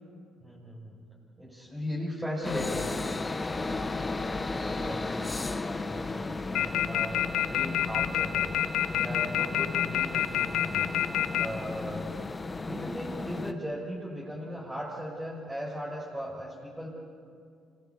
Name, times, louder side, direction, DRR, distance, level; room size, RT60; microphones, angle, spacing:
voice 1, 0.4-1.0 1.4-2.9 3.5-5.4 5.7-8.6 8.9-10.9 11.4-12.2 12.6-16.9, equal, 10° right, -6 dB, 6.9 m, -38 dB
sound 1, 2.4-13.5, left 3 dB, 25° left, 1.4 m, -34 dB
sound 2, 6.5-11.4, left 13 dB, 70° left, 0.8 m, -26 dB
26.5 x 20.0 x 8.7 m, 2.3 s
supercardioid pair, 60°, 0 cm